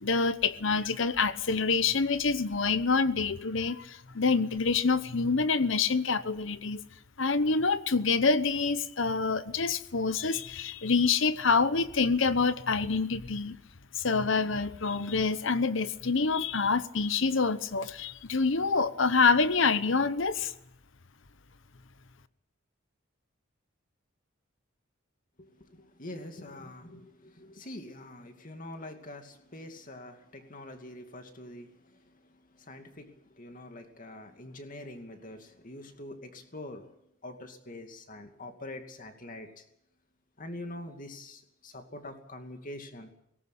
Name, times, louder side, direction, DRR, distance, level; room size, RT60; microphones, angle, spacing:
voice 1, 0.0-6.8 7.2-13.6 13.9-20.5, left 4 dB, 65° left, 14 dB, 1.0 m, -26 dB
voice 2, 25.4-36.9 37.2-39.6 40.4-43.1, left 1 dB, 40° left, 5 dB, 2.5 m, -45 dB
18.5 x 17.5 x 8.4 m, 0.77 s
head